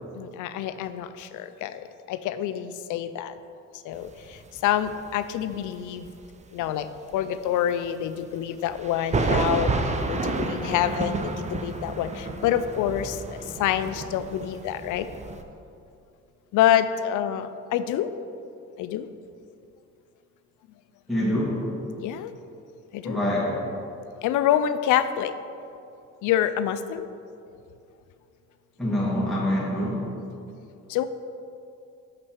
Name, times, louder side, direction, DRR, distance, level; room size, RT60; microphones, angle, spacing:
voice 1, 0.2-3.4 3.8-6.1 6.5-15.1 16.5-18.1 18.8-19.1 22.0-22.3 22.9-23.2 24.2-25.3 26.2-27.1 30.2-30.3 30.6-31.0, left 10 dB, 85° left, 12 dB, 0.4 m, -27 dB
sound 1, 4.0-5.6 5.9-6.3 6.6-6.7 7.1-7.2 8.7-15.4, right 3 dB, 25° right, 0.5 m, -30 dB
voice 2, 21.1-21.6 23.0-23.6 28.8-30.1, left 1 dB, ahead, -7 dB, 1.7 m, -25 dB
6.2 x 5.9 x 4.5 m, 2.6 s
cardioid pair, 90°, 30 cm